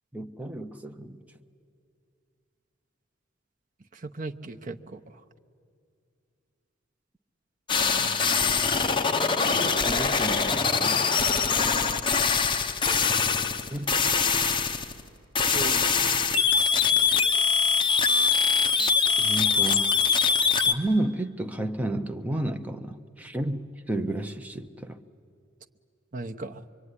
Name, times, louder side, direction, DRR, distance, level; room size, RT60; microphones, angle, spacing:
voice 1, 0.1-1.2 8.0-8.7 9.6-11.0 13.7-14.0 16.0-16.4 19.2-20.0 20.7-25.0, right 1 dB, 5° right, 0.7 m, -32 dB
voice 2, 3.9-5.0 11.4-11.6 15.5-16.2 26.1-26.6, right 3 dB, 40° right, 0.9 m, -37 dB
sound 1, 7.7-15.1 15.3-20.7, left 5 dB, 25° left, 0.9 m, -23 dB
24.5 x 24.0 x 9.8 m
head